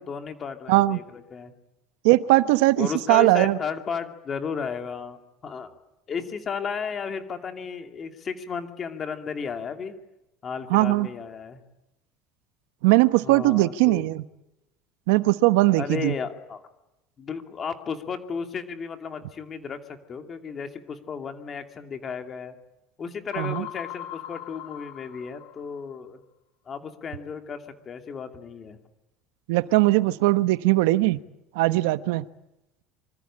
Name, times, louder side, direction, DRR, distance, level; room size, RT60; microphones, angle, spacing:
voice 1, 0.0-1.5 2.8-5.7 6.1-9.9 10.4-11.6 13.2-14.1 15.8-16.6 17.2-22.5 23.0-26.2 26.7-28.8, left 6 dB, 20° left, 7 dB, 2.6 m, -34 dB
voice 2, 0.7-1.0 2.0-3.6 10.7-11.1 12.8-14.2 15.1-16.1 23.4-23.6 29.5-31.2 31.5-32.2, right 19 dB, 75° right, 14 dB, 1.1 m, -20 dB
sound 1, 23.3-25.9, left 14 dB, 55° left, 2.6 m, -39 dB
26.5 x 25.5 x 8.8 m, 0.92 s
cardioid pair, 180°, 0 cm